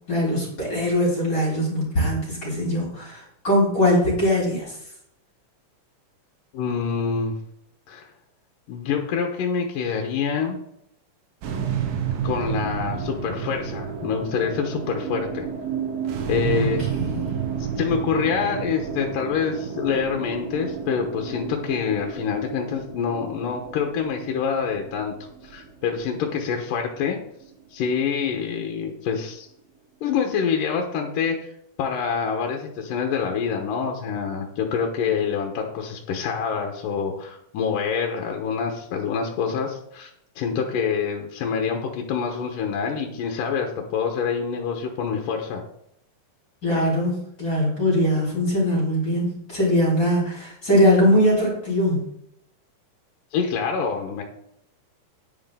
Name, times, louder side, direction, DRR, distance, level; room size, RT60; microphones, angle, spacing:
voice 1, 0.1-4.7 16.5-17.2 46.6-52.1, equal, 30° left, -5 dB, 4.4 m, -21 dB
voice 2, 6.5-7.3 7.9-8.1 8.7-10.6 12.2-15.5 16.3-16.8 17.8-25.1 25.4-27.2 27.7-29.5 30.0-31.4 31.8-40.1 40.4-45.6 53.3-54.2, left 6 dB, 75° left, 3 dB, 2.7 m, -26 dB
sound 1, 11.4-27.8, right 7 dB, 80° right, 3.0 m, -31 dB
9.9 x 9.4 x 3.8 m, 0.75 s
omnidirectional pair, 4.0 m